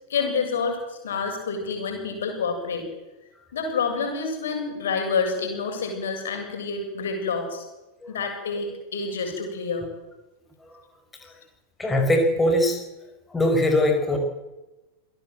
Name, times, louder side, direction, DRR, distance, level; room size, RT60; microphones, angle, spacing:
voice 1, 0.1-2.8 3.5-7.6 8.1-9.9, left 5 dB, 60° left, 4 dB, 7.3 m, -28 dB
voice 2, 11.8-12.8 13.3-14.2, left 1 dB, 10° left, 3 dB, 5.2 m, -21 dB
28.0 x 17.0 x 7.9 m, 1.1 s
figure-of-eight pair, 90°, 0 cm